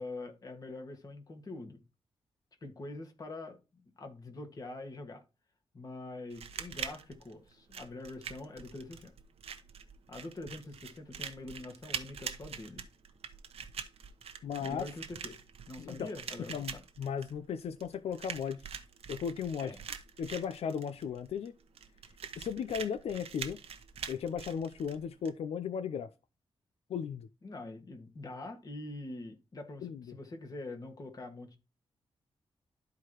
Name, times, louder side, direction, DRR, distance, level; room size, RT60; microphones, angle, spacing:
voice 1, 0.0-1.8 2.6-5.2 5.7-9.1 10.1-12.8 14.6-15.4 15.7-16.8 19.6-19.8 27.4-31.6, left 2 dB, 40° left, 1.7 m, -44 dB
sound 1, 6.3-25.3, right 7 dB, 75° right, 1.0 m, -44 dB
voice 2, 14.4-14.9 15.8-16.1 16.5-18.7 19.1-19.7 20.2-21.5 22.4-23.6 24.1-26.1 26.9-27.3 29.8-30.2, left 7 dB, 85° left, 0.5 m, -36 dB
12.5 x 4.7 x 3.0 m
wide cardioid pair, 145°, 10 cm